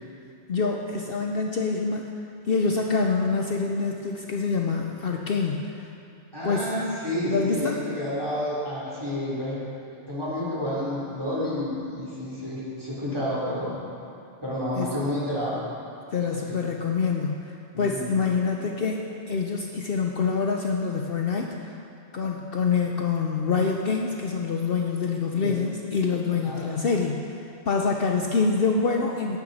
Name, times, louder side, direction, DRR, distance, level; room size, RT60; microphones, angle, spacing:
voice 1, 0.5-2.1 2.4-5.9 6.4-6.7 7.2-7.8 14.8-15.0 16.1-21.7 22.1-27.4 27.7-29.4, left 4 dB, 60° left, 1 dB, 0.9 m, -26 dB
voice 2, 6.3-9.6 10.1-13.8 14.4-15.6 16.5-16.6 17.7-18.1 25.4-25.6 26.4-26.8, left 1 dB, 20° right, -8 dB, 3.5 m, -30 dB
17.0 x 8.8 x 4.2 m, 2.7 s
omnidirectional pair, 1.2 m